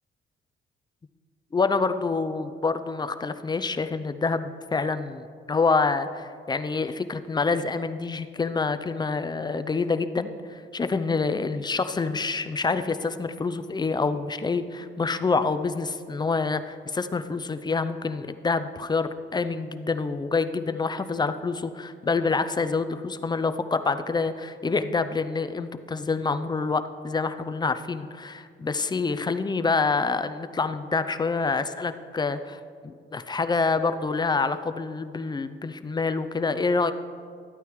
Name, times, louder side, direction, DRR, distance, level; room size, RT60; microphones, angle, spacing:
voice 1, 1.5-36.9, left 4 dB, 20° left, 11 dB, 0.5 m, -27 dB
13.0 x 9.1 x 3.1 m, 2.2 s
cardioid pair, 90°, 20 cm